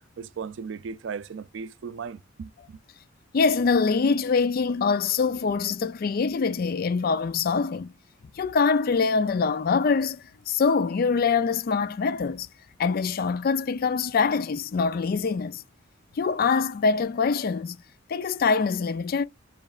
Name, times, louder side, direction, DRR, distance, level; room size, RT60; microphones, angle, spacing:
voice 1, 0.2-2.8, right 6 dB, 65° right, 0.4 m, -37 dB
voice 2, 3.3-7.9 8.4-12.5 12.8-15.6 16.2-17.8 18.1-19.2, left 5 dB, 50° left, 0.4 m, -24 dB
6.9 x 3.1 x 2.4 m
head